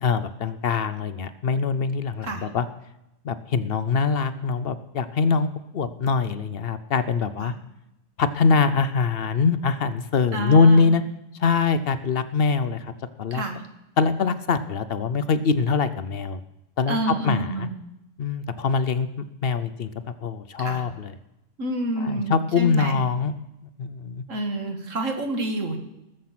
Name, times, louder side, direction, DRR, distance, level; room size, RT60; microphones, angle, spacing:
voice 1, 0.0-2.7 3.2-7.5 8.2-11.0 11.4-12.9 13.2-13.4 14.0-16.4 16.8-17.7 18.2-19.1 19.4-19.9 20.2-21.1 22.0-23.3 23.8-24.2, left 5 dB, 55° left, 13 dB, 0.8 m, -23 dB
voice 2, 10.3-10.9 13.3-13.6 16.9-17.8 20.6-20.8 21.6-23.0 24.3-25.8, right 2 dB, 90° right, 5 dB, 2.0 m, -28 dB
19.0 x 7.6 x 5.9 m, 0.89 s
omnidirectional pair, 1.3 m